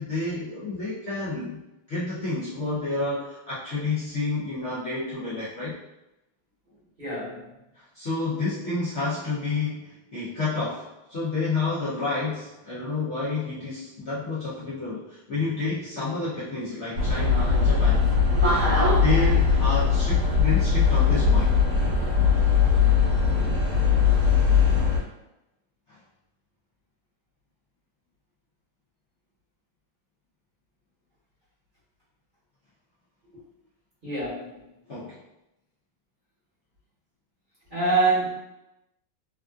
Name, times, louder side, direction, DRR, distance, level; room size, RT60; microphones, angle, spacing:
voice 1, 0.0-1.6 1.9-5.8 7.7-18.1 18.9-21.5 25.9-26.0 34.9-35.2, left 3 dB, 90° left, -11 dB, 0.6 m, -30 dB
voice 2, 7.0-7.5 34.0-34.6 37.7-38.3, right 3 dB, 30° right, -10 dB, 1.1 m, -25 dB
sound 1, 17.0-25.0, left 5 dB, 55° right, 1.5 m, -20 dB
3.4 x 2.5 x 2.3 m, 0.93 s
omnidirectional pair, 2.3 m